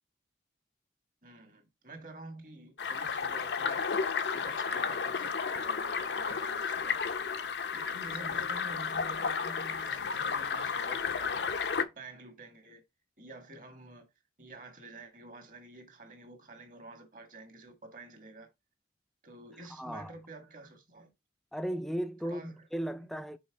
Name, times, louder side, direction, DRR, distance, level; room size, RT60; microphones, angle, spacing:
voice 1, 1.2-7.1 7.7-11.5 11.8-12.8 13.2-14.1 14.4-18.5 19.2-21.1 22.2-22.6 23.0-23.1, right 2 dB, 45° right, 1.5 m, -49 dB
sound 1, 2.8-11.9, left 5 dB, 70° left, 0.6 m, -32 dB
voice 2, 19.7-20.1 21.5-23.4, equal, ahead, 0.4 m, -36 dB
5.4 x 4.1 x 4.4 m
head